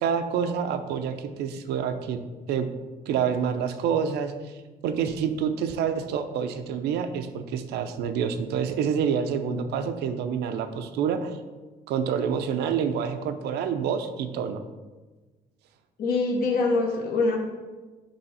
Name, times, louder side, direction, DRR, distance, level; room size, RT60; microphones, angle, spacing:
voice 1, 0.0-2.2 2.5-2.7 3.1-4.6 4.8-11.4 11.9-14.6, right 7 dB, 75° right, 9 dB, 0.6 m, -27 dB
voice 2, 16.0-17.4, left 3 dB, 60° left, 0 dB, 1.1 m, -24 dB
6.8 x 3.1 x 5.6 m, 1.3 s
cardioid pair, 110°, 17 cm